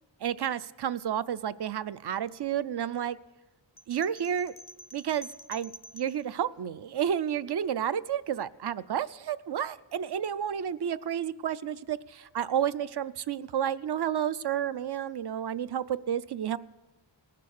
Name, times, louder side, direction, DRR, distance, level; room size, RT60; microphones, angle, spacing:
voice 1, 0.2-3.2 3.9-4.5 4.9-16.6, right 9 dB, 55° right, 15 dB, 0.5 m, -31 dB
sound 1, 3.8-6.2, equal, 30° left, 0.4 m, -48 dB
18.5 x 6.8 x 6.5 m, 1.1 s
wide cardioid pair, 100°, 48 cm